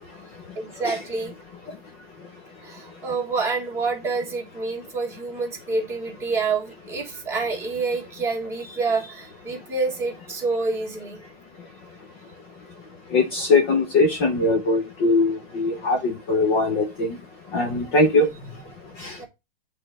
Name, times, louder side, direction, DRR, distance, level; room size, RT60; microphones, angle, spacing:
voice 1, 0.5-1.3 2.6-11.2 17.6-17.8 19.2-19.3, right 4 dB, 10° right, 1.6 m, -27 dB
voice 2, 13.1-17.2 17.5-18.3 19.0-19.2, left 2 dB, 25° left, 0.7 m, -21 dB
8.1 x 3.4 x 3.9 m
hypercardioid pair, 165°, 30 cm